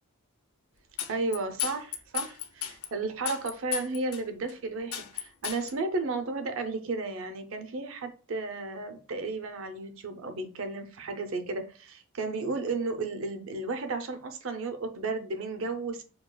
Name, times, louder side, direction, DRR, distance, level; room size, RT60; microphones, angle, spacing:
sound 1, 1.0-2.9 3.3-4.2 4.5-4.6 4.9-5.7, left 10 dB, 85° left, 0.6 m, -34 dB
voice 1, 1.1-16.0, right 3 dB, 65° right, 0.6 m, -33 dB
6.8 x 2.4 x 2.2 m
head